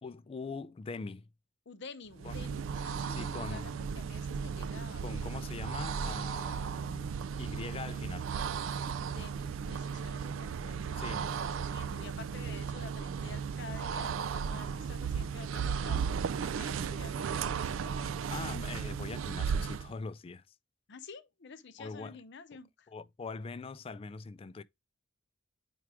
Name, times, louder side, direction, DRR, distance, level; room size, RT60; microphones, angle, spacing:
voice 1, 0.0-1.3 2.2-2.3 3.1-3.7 5.0-8.4 10.9-11.3 18.3-20.4 21.8-22.2 22.9-24.6, left 4 dB, 30° left, 0.3 m, -42 dB
voice 2, 1.7-5.3 9.0-18.2 20.9-22.9, left 4 dB, 60° left, 0.7 m, -50 dB
sound 1, 2.1-19.9, right 6 dB, 75° right, 0.3 m, -35 dB
4.7 x 4.6 x 4.7 m
head